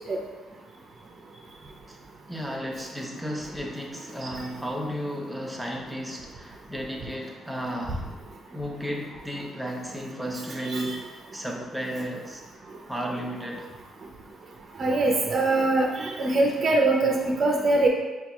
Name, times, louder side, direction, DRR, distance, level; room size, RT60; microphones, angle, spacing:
voice 1, 2.3-8.1 8.5-12.4 12.9-13.7, equal, 5° right, 0 dB, 0.6 m, -34 dB
voice 2, 10.6-11.0 14.8-17.9, right 2 dB, 40° right, 0 dB, 0.5 m, -23 dB
4.7 x 2.3 x 2.9 m, 1.2 s
cardioid pair, 90°, 0 cm